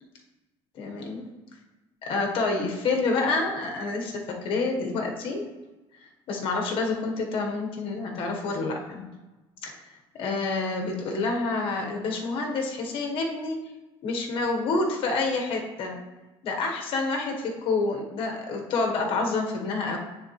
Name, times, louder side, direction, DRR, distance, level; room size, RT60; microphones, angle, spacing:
voice 1, 0.7-1.2 2.0-5.5 6.3-9.1 9.6-9.7 10.2-13.6 14.0-16.0 16.4-20.0, left 3 dB, 55° left, 1 dB, 1.3 m, -28 dB
9.5 x 3.8 x 3.2 m, 1.1 s
cardioid pair, 150°, 11 cm